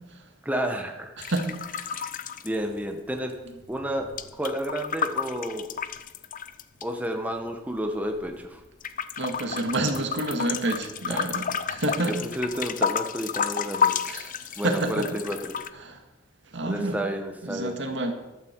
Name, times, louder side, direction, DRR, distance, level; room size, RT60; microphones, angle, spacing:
voice 1, 0.4-1.1 2.4-3.3 3.7-4.1 4.3-5.7 6.8-8.6 11.1-11.3 12.1-13.9 14.6-15.5 16.6-17.8, equal, 10° right, 3 dB, 1.1 m, -31 dB
sound 1, 1.2-3.2 3.5-6.8 7.5-8.5 8.8-15.7, left 7 dB, 45° left, 0.6 m, -31 dB
voice 2, 1.2-1.9 9.2-12.1 14.1-14.3 14.6-15.1 15.8-16.0 16.5-17.0 17.4-18.1, right 2 dB, 65° right, 4 dB, 2.0 m, -28 dB
14.0 x 12.5 x 4.6 m, 1.0 s
head